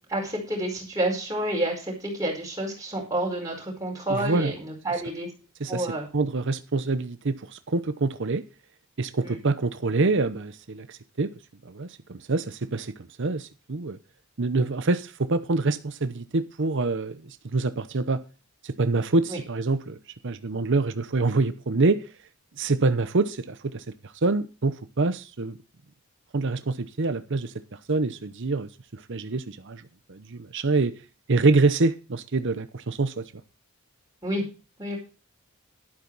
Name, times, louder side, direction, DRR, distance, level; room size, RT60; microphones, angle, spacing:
voice 1, 0.1-5.3 5.7-6.1 9.2-9.4 19.3-19.4 34.2-34.4 34.8-35.0, right 1 dB, 15° right, 4.9 m, -29 dB
voice 2, 4.1-4.5 5.6-5.9 6.1-8.4 9.0-11.3 11.6-14.0 14.4-18.2 18.6-20.0 20.2-22.0 22.6-23.8 24.2-25.6 26.3-27.5 27.9-29.8 30.1-30.9 31.3-33.2, right 3 dB, 55° right, 0.8 m, -26 dB
11.5 x 10.5 x 4.0 m
head